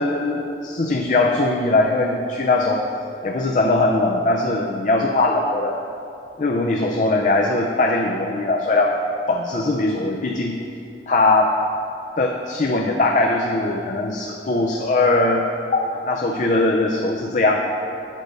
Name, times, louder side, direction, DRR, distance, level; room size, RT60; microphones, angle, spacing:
voice 1, 0.0-2.8 3.2-5.8 6.4-10.6 11.1-11.6 12.2-17.6, left 2 dB, 45° left, 1 dB, 0.4 m, -20 dB
8.2 x 4.0 x 6.4 m, 2.7 s
head